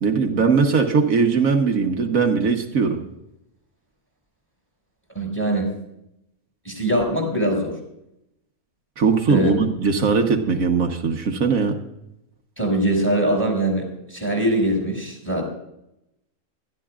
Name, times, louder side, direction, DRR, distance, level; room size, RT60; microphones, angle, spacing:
voice 1, 0.0-3.0 9.0-11.8, right 5 dB, 75° right, 3 dB, 1.5 m, -20 dB
voice 2, 5.1-5.7 6.6-7.7 9.3-9.6 12.6-15.5, right 1 dB, 10° left, 0 dB, 6.0 m, -22 dB
21.5 x 13.0 x 2.4 m, 0.83 s
omnidirectional pair, 1.5 m